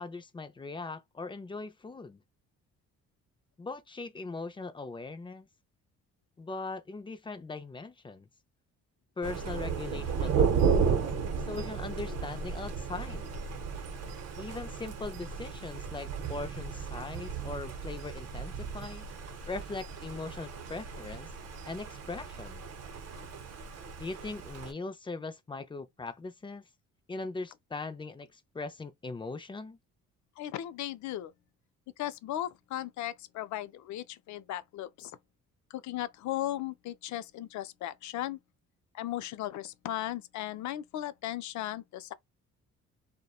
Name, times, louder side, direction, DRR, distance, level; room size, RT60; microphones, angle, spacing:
voice 1, 0.0-2.2 3.6-5.5 6.4-8.3 9.2-11.0 11.5-13.3 14.4-19.1 19.4-21.3 21.6-22.6 24.0-26.7 27.1-29.8, left 3 dB, 15° left, 0.5 m, -40 dB
Thunder, 9.2-24.7, right 6 dB, 55° right, 0.7 m, -34 dB
voice 2, 30.4-31.3 32.0-35.1 35.7-38.4 38.9-42.1, left 13 dB, 70° left, 0.5 m, -36 dB
2.7 x 2.2 x 2.3 m
cardioid pair, 90°, 30 cm